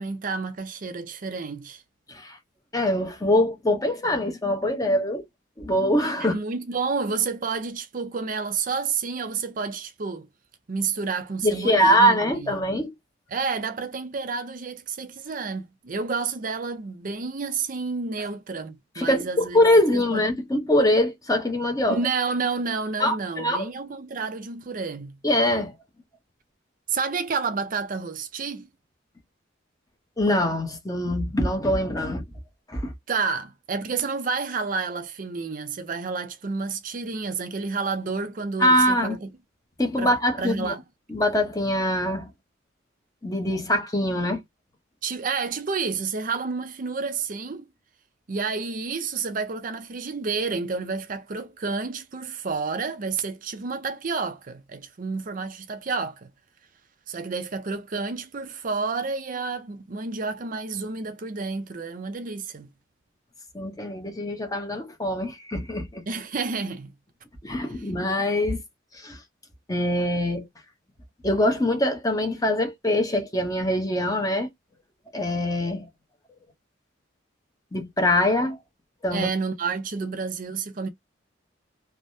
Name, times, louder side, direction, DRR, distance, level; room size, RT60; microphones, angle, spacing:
voice 1, 0.0-1.8 6.2-10.3 10.7-12.7 13.3-19.6 19.9-20.2 21.9-25.2 26.9-28.7 33.1-39.3 40.0-40.1 40.4-40.8 45.0-47.7 48.3-56.3 57.1-62.7 66.1-66.9 79.1-80.9, right 4 dB, 45° right, 0.5 m, -30 dB
voice 2, 2.7-5.3 5.6-6.4 11.4-12.9 19.0-22.0 23.0-23.7 25.2-25.7 30.2-32.2 32.7-32.9 38.6-39.2 39.8-40.7 41.1-42.3 43.2-44.4 63.5-66.0 67.4-68.6 68.9-69.2 69.7-70.5 71.2-74.5 75.1-75.9 77.7-78.6 79.0-79.3, left 1 dB, 20° left, 0.8 m, -23 dB
3.3 x 2.1 x 2.6 m
head